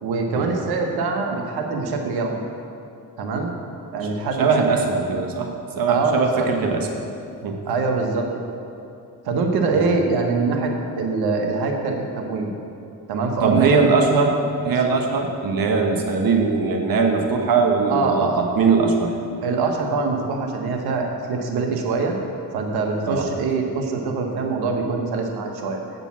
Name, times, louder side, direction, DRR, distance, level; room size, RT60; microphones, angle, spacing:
voice 1, 0.0-2.4 3.2-3.5 3.9-4.5 5.9-6.5 7.7-8.3 9.2-12.5 13.1-13.9 17.9-18.4 19.4-22.2 22.5-25.8, right 4 dB, 80° right, 3 dB, 1.3 m, -24 dB
voice 2, 4.4-6.9 7.4-7.6 9.7-9.9 13.4-14.4 14.6-19.1 23.1-23.3, right 4 dB, 65° right, 3 dB, 1.3 m, -20 dB
8.4 x 6.7 x 6.1 m, 2.6 s
supercardioid pair, 70°, 37 cm